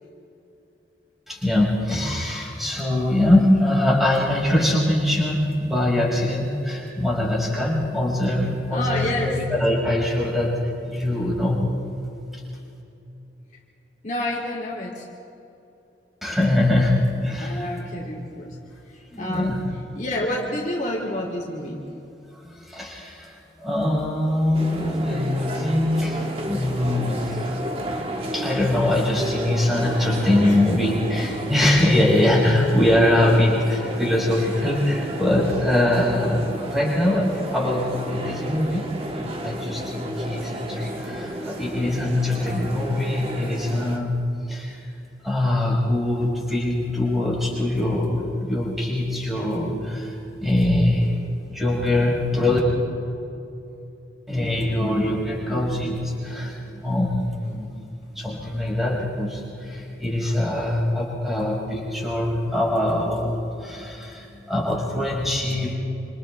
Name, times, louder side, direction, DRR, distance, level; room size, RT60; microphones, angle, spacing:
voice 1, 1.3-11.7 12.3-12.4 16.2-17.7 19.1-19.6 22.4-27.4 28.3-44.9 45.2-51.2 51.5-52.6 54.3-57.7 58.1-65.7, left 1 dB, ahead, -4 dB, 5.7 m, -23 dB
voice 2, 8.7-9.4 14.0-15.1 17.4-18.6 19.2-21.9 30.4-30.6, left 1 dB, 40° left, -3 dB, 3.0 m, -29 dB
sound 1, 24.5-44.0, right 1 dB, 30° right, 1.7 m, -32 dB
28.0 x 27.5 x 3.5 m, 2.8 s
head